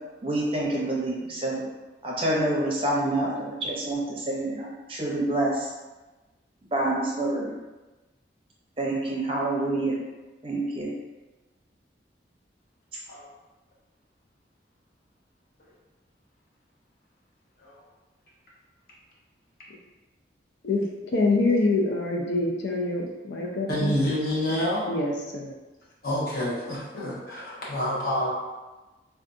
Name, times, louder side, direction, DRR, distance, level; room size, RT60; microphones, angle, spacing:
voice 1, 0.2-1.6 2.0-5.7 6.7-7.5 8.8-9.9 10.4-10.9, right 1 dB, 30° right, -3 dB, 0.5 m, -27 dB
voice 2, 20.6-24.0 24.9-25.5, left 2 dB, 80° left, 0 dB, 0.5 m, -25 dB
voice 3, 23.7-24.9 26.0-28.3, equal, 50° left, -6 dB, 0.9 m, -28 dB
3.7 x 2.3 x 2.6 m, 1.2 s
head